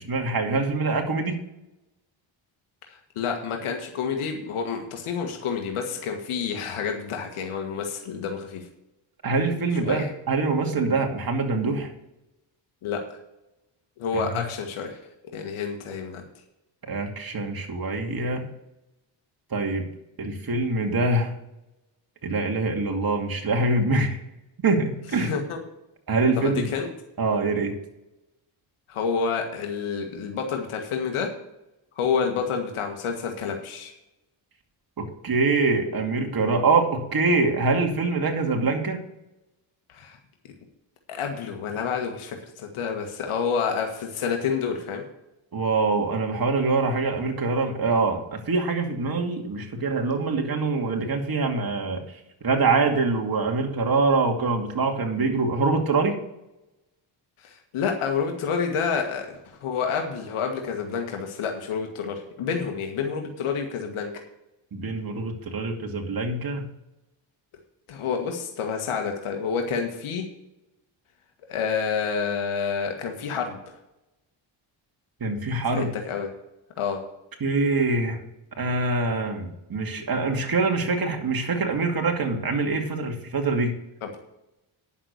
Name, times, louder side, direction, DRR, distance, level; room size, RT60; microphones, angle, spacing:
voice 1, 0.0-1.4 9.2-11.9 14.3-14.4 16.9-18.5 19.5-19.8 20.2-21.3 22.2-24.2 24.6-25.3 26.1-26.7 27.2-27.7 35.0-39.0 45.5-52.0 52.4-56.2 64.7-66.7 75.2-75.9 77.4-78.2 78.6-83.8, right 3 dB, 45° right, 2 dB, 2.5 m, -24 dB
voice 2, 2.9-8.7 9.7-10.1 12.8-13.0 14.0-15.0 15.3-16.3 25.1-25.6 26.4-26.9 28.9-31.3 32.0-33.9 39.9-40.2 41.1-45.0 57.4-64.1 67.9-70.2 71.5-73.8 75.5-76.3 76.8-77.0 84.0-84.2, left 6 dB, 80° left, 3 dB, 1.8 m, -29 dB
9.8 x 7.4 x 6.5 m, 0.91 s
supercardioid pair, 60°, 49 cm